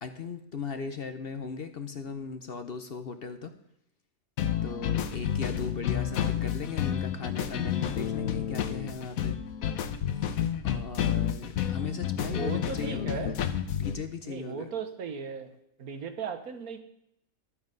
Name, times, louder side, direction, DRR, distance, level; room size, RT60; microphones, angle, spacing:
voice 1, 0.0-3.5 4.6-9.4 10.1-10.3 10.6-13.3 13.7-14.7, left 5 dB, 50° left, 8 dB, 0.8 m, -37 dB
sound 1, 4.4-14.0, left 9 dB, 70° left, 1.2 m, -30 dB
voice 2, 12.3-13.3 14.2-15.5 15.8-16.8, right 6 dB, 80° right, 8 dB, 1.6 m, -36 dB
12.0 x 8.7 x 5.3 m, 0.78 s
omnidirectional pair, 1.5 m